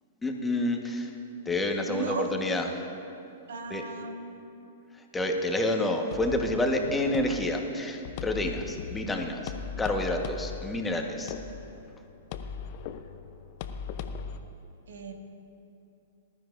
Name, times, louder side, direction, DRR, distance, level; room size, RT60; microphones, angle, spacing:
voice 1, 0.2-1.1 1.4-2.7 3.7-3.8 5.0-11.3, left 1 dB, 10° left, 3 dB, 1.3 m, -29 dB
voice 2, 1.9-2.3 3.5-4.7 14.9-15.1, right 5 dB, 70° right, 4 dB, 1.4 m, -36 dB
sound 1, 6.1-14.4, left 6 dB, 50° left, 0.7 m, -39 dB
20.0 x 12.5 x 2.6 m, 2.7 s
hypercardioid pair, 110°, 0 cm